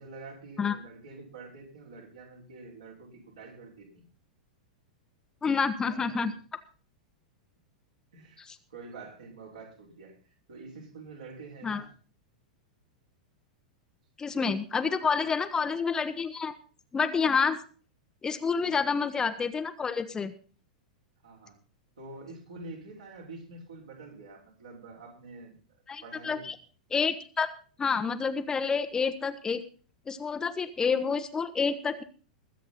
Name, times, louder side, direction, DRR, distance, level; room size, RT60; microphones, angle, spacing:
voice 1, 0.0-4.0 5.8-6.4 8.1-8.4 8.7-10.2 10.5-11.9 15.1-15.2 18.6-18.8 21.2-21.6 22.0-25.6 26.0-26.5, right 3 dB, 70° right, -2 dB, 5.5 m, -46 dB
voice 2, 5.4-6.3 8.5-8.6 11.6-11.8 14.2-16.5 16.9-17.6 18.2-20.3 25.9-26.5 26.9-27.5 27.8-29.6 30.1-32.0, left 5 dB, 15° left, 9 dB, 1.0 m, -28 dB
21.5 x 8.2 x 4.1 m, 0.39 s
figure-of-eight pair, 95°, 4 cm